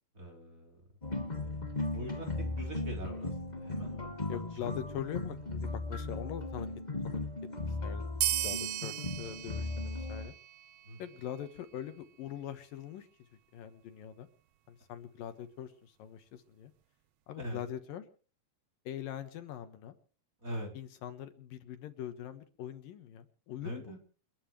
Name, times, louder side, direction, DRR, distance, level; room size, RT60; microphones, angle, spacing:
voice 1, 0.2-0.8 1.3-1.5 1.9-2.3 2.6-4.4 10.9-11.0 17.4-17.6 20.4-20.7 23.6-24.0, equal, 20° right, 1 dB, 4.7 m, -42 dB
sound 1, 1.0-10.3, left 2 dB, 15° left, 1.5 m, -37 dB
voice 2, 4.3-6.7 7.0-7.2 7.7-10.3 11.0-13.1 13.5-14.3 14.7-16.7 17.3-18.0 18.9-20.0 20.7-24.0, left 10 dB, 75° left, 9 dB, 3.0 m, -42 dB
sound 2, 8.2-11.2, right 12 dB, 85° right, 1.4 m, -36 dB
30.0 x 11.5 x 3.2 m, 0.39 s
omnidirectional pair, 4.2 m